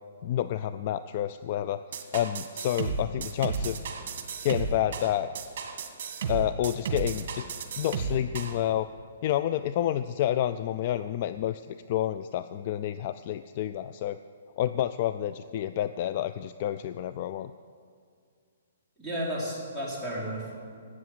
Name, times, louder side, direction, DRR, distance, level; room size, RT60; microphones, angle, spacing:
voice 1, 0.2-1.8 2.1-3.8 4.4-5.3 6.3-7.4 7.8-8.9 9.2-14.2 14.6-17.5, left 11 dB, 40° left, 12 dB, 0.3 m, -29 dB
sound 1, 1.9-8.6, right 5 dB, 50° right, 1.8 m, -33 dB
voice 2, 19.0-20.5, equal, 10° left, -7 dB, 4.2 m, -33 dB
12.5 x 8.6 x 9.4 m, 2.3 s
hypercardioid pair, 155°, 0 cm